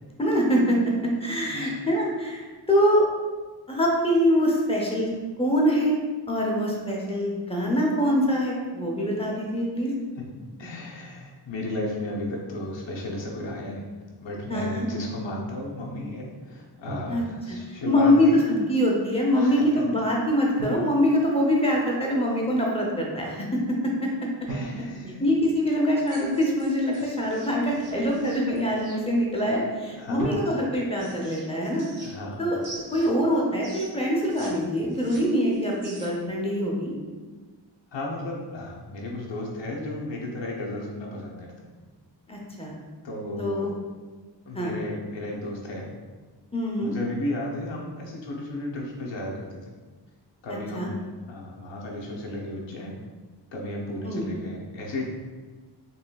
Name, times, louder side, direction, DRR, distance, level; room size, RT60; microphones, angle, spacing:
voice 1, 0.2-0.8 1.2-3.0 3.7-5.1 5.4-6.0 6.3-9.9 14.5-14.9 17.1-17.2 17.8-24.1 25.2-31.9 32.4-32.6 32.9-36.9 42.3-42.7 43.4-43.7 44.5-44.7 46.5-46.9 50.7-50.9 54.0-54.2, equal, 15° left, -2 dB, 0.6 m, -24 dB
voice 2, 1.5-1.9 10.2-10.3 10.6-13.9 14.2-18.4 19.3-19.8 24.5-25.3 26.9-27.0 29.9-30.4 32.0-32.4 37.9-41.7 43.0-43.7 44.5-45.9 46.8-49.7 50.4-53.0 53.5-55.1, left 1 dB, 90° left, -3 dB, 0.8 m, -34 dB
Drum, 14.4-14.7 16.9-18.0 20.6-22.0 24.5-26.2 30.2-31.1, right 2 dB, 45° right, 1.0 m, -39 dB
sound 1, 26.0-29.0 30.5-32.3 32.6-34.5 34.8-36.3, right 2 dB, 85° right, 1.2 m, -45 dB
4.3 x 3.1 x 2.3 m, 1.4 s
wide cardioid pair, 160°, 44 cm